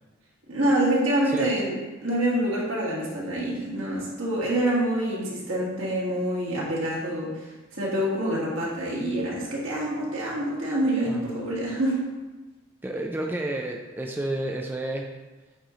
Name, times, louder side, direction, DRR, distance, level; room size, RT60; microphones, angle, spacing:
voice 1, 0.5-1.8 2.0-7.4 7.7-12.0, right 1 dB, 75° right, -5 dB, 1.9 m, -26 dB
voice 2, 12.8-15.1, right 1 dB, 10° right, 1 dB, 0.4 m, -30 dB
8.4 x 3.9 x 3.1 m, 1.2 s
head